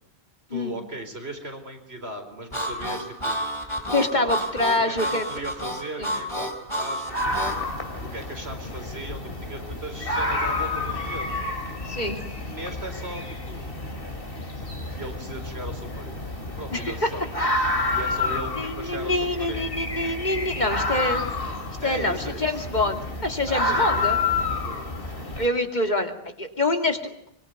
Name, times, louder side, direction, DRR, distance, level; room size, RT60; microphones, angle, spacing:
voice 1, 0.5-3.4 4.0-4.3 4.8-7.1 7.4-7.5 8.0-11.4 12.5-13.7 14.9-16.2 16.6-17.3 17.9-19.7 20.9-21.1 21.8-22.7 23.5-25.3, right 1 dB, 80° right, 5 dB, 4.8 m, -38 dB
Harmonica, 2.5-7.6, equal, 25° left, 3.9 m, -30 dB
voice 2, 3.9-5.2 6.0-6.1 11.9-12.2 16.7-17.1 18.6-21.2 21.8-24.2 25.4-26.1 26.4-27.1, left 2 dB, 45° left, 6 dB, 2.7 m, -25 dB
sound 1, 7.1-25.5, left 2 dB, 60° left, 3.2 m, -29 dB
25.0 x 22.5 x 9.5 m, 0.72 s
omnidirectional pair, 1.1 m